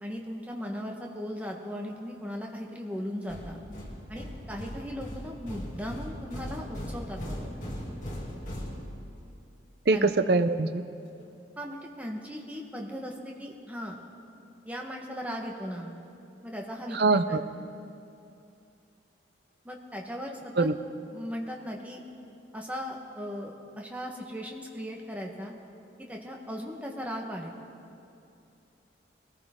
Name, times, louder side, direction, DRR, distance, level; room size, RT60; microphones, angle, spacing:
voice 1, 0.0-3.6 4.1-7.5 9.9-10.1 11.6-14.0 14.6-15.9 16.4-17.2 19.6-20.7 21.1-22.0 22.5-25.5 26.0-27.5, equal, 10° right, 0 dB, 1.3 m, -37 dB
sound 1, 3.3-9.3, equal, 40° left, 2.6 m, -39 dB
voice 2, 9.9-10.8 16.9-17.4 20.6-20.7, right 3 dB, 55° right, 10 dB, 0.6 m, -23 dB
21.5 x 14.5 x 3.7 m, 2.7 s
head